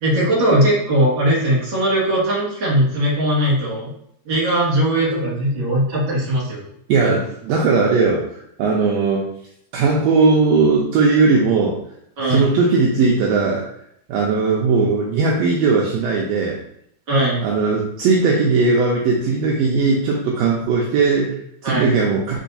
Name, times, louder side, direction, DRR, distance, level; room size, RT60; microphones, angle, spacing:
voice 1, 0.0-3.9 4.3-6.6 12.2-12.5 17.1-17.4 21.6-21.9, right 1 dB, 45° right, -7 dB, 2.3 m, -19 dB
voice 2, 6.9-9.2 9.7-11.8 12.3-13.6 14.1-16.6 17.4-22.4, right 4 dB, 75° right, -2 dB, 1.6 m, -18 dB
4.5 x 4.1 x 2.7 m, 0.72 s
omnidirectional pair, 3.5 m